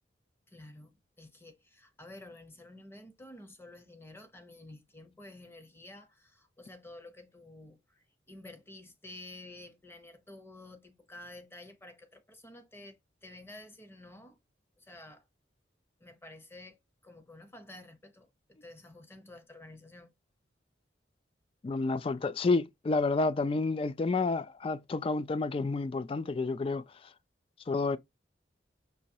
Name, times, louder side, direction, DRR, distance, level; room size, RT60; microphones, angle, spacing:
voice 1, 0.5-14.4 14.8-15.3 16.0-16.8 17.0-20.1, left 1 dB, 15° left, 0.8 m, -51 dB
voice 2, 21.6-26.8 27.7-28.0, left 3 dB, 30° left, 0.3 m, -30 dB
5.5 x 3.0 x 2.7 m
head